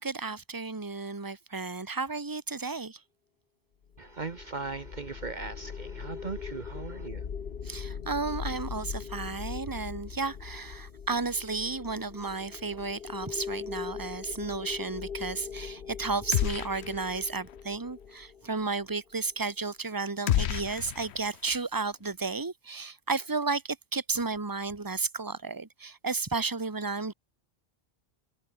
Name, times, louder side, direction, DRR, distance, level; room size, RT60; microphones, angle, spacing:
voice 1, 0.0-3.0 7.6-27.1, right 4 dB, 20° right, 1.4 m, -33 dB
sound 1, 3.9-19.1, left 7 dB, 60° left, 1.2 m, -41 dB
voice 2, 4.0-7.2, right 4 dB, 45° right, 1.2 m, -38 dB
sound 2, 16.3-17.2 17.5-17.6 20.3-21.6, left 12 dB, 85° left, 0.9 m, -30 dB
omnidirectional pair, 1.1 m